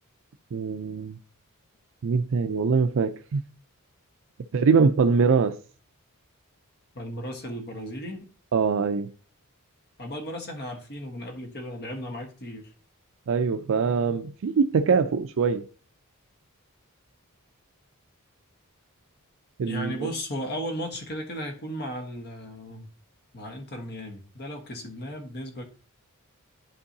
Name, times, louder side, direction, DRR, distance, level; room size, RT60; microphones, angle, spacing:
voice 1, 0.5-1.2 2.0-3.4 4.5-5.6 8.5-9.1 13.3-15.7 19.6-20.1, right 5 dB, 65° right, 0.4 m, -23 dB
voice 2, 6.9-8.3 10.0-12.7 19.6-22.9 23.3-25.6, equal, 50° left, 1.4 m, -35 dB
11.5 x 4.6 x 2.7 m
head